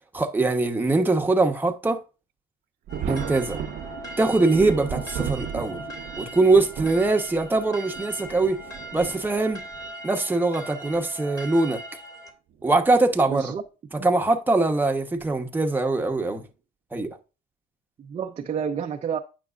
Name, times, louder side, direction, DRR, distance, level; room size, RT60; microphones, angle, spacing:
voice 1, 0.1-2.0 3.1-3.6 4.2-5.8 6.2-8.6 8.9-9.6 10.0-11.8 12.6-13.5 14.0-16.4 16.9-17.1, right 2 dB, 10° right, 1.1 m, -22 dB
sound 1, 2.9-12.3, right 1 dB, 20° left, 2.6 m, -40 dB
Thunder, 2.9-9.9 10.9-11.0 12.5-12.8 13.1-13.2 15.2-15.4 16.1-16.4, right 8 dB, 65° right, 0.8 m, -36 dB
voice 2, 13.3-13.6 14.0-14.1 18.0-19.2, right 7 dB, 40° right, 0.7 m, -30 dB
9.3 x 6.0 x 2.5 m
cardioid pair, 110°, 17 cm